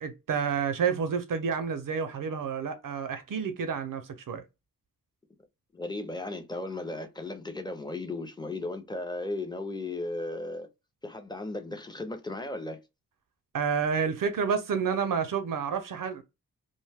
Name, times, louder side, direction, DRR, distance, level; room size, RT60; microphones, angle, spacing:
voice 1, 0.0-4.4 13.5-16.2, right 6 dB, 65° right, 0.5 m, -29 dB
voice 2, 5.7-10.7 11.0-12.8, left 2 dB, 10° left, 0.5 m, -35 dB
2.6 x 2.1 x 3.3 m
wide cardioid pair, 135°, 36 cm